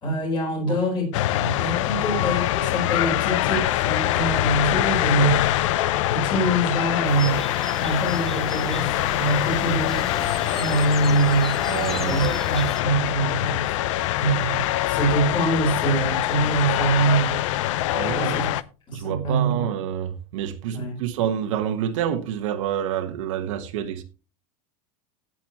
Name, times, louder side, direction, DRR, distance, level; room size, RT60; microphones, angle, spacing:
voice 1, 0.0-5.4 6.1-7.4 7.8-8.9 9.2-10.3 10.6-11.5 12.0-13.6 14.2-17.4 18.2-18.5 18.9-19.7 20.7-21.0, right 2 dB, 25° left, 4.4 m, -24 dB
sound 1, 1.1-18.6, left 14 dB, 55° left, 0.5 m, -24 dB
sound 2, 7.1-12.8, left 1 dB, ahead, 0.5 m, -36 dB
voice 2, 11.7-12.4 17.9-18.5 18.9-24.0, right 10 dB, 55° right, 1.3 m, -28 dB
16.5 x 7.2 x 3.0 m
supercardioid pair, 180°, 19 cm